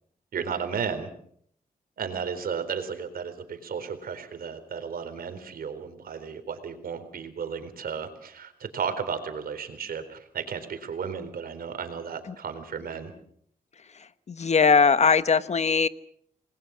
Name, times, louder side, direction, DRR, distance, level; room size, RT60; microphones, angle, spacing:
voice 1, 0.3-1.1 2.0-13.1, right 6 dB, 80° right, 9 dB, 4.0 m, -34 dB
voice 2, 13.9-15.9, left 5 dB, 50° left, 14 dB, 1.1 m, -21 dB
28.5 x 21.0 x 6.3 m, 0.63 s
wide cardioid pair, 110°, 15 cm